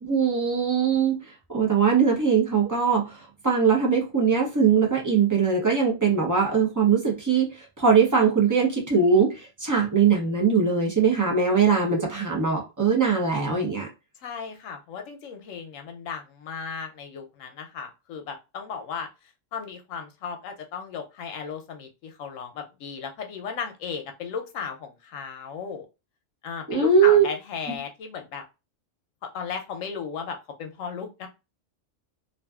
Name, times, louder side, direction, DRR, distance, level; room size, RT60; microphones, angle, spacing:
voice 1, 0.0-13.9 26.7-27.2 27.7-27.8, right 6 dB, 25° right, 0.4 m, -21 dB
voice 2, 14.2-19.1 19.5-25.9 26.4-28.4 29.3-31.3, left 6 dB, 85° left, 1.0 m, -35 dB
2.5 x 2.4 x 2.3 m
omnidirectional pair, 1.3 m